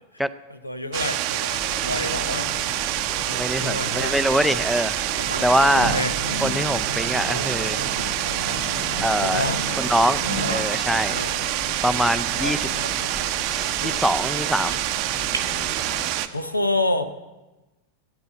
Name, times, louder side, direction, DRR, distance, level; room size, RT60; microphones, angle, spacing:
voice 1, 0.5-2.5 3.2-4.1 5.6-6.1 9.2-9.6 11.1-11.4 12.3-13.5 13.8-13.9 16.3-17.0, left 1 dB, 85° left, 11 dB, 0.7 m, -29 dB
sound 1, 0.9-16.3, right 13 dB, 45° right, 0.6 m, -26 dB
sound 2, 1.5-16.0, left 3 dB, 35° left, 1.8 m, -38 dB
voice 2, 3.3-5.0 5.4-6.0 6.4-7.8 9.0-9.5 9.8-10.2 10.5-11.2 11.8-12.7 13.4-14.8, equal, ahead, 11 dB, 0.4 m, -23 dB
sound 3, 5.2-16.2, right 1 dB, 75° right, 1.0 m, -34 dB
10.5 x 8.6 x 7.8 m, 1.1 s
figure-of-eight pair, 90°, 0 cm